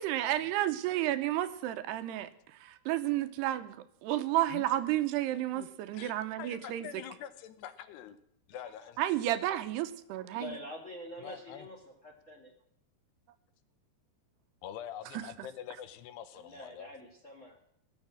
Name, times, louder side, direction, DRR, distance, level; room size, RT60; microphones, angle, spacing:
voice 1, 0.0-6.9 9.0-10.6, right 14 dB, 80° right, 11 dB, 2.7 m, -32 dB
voice 2, 6.4-8.2 8.5-9.0 11.2-11.7 14.6-16.9, left 10 dB, 80° left, 12 dB, 2.9 m, -45 dB
voice 3, 10.3-12.5 16.3-17.6, left 1 dB, 35° left, 0 dB, 1.3 m, -46 dB
18.5 x 7.5 x 7.4 m, 0.73 s
omnidirectional pair, 5.0 m